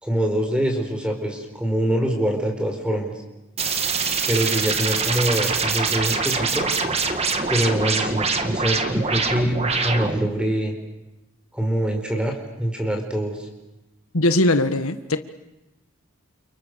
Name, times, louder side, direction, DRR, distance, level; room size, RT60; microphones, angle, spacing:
voice 1, 0.0-3.1 3.9-6.8 7.5-10.7 11.5-13.5, right 1 dB, 5° right, 4.9 m, -24 dB
sound 1, 3.6-10.3, right 4 dB, 30° right, 1.9 m, -24 dB
voice 2, 14.1-15.2, left 1 dB, 90° left, 1.6 m, -20 dB
29.5 x 29.5 x 6.9 m
head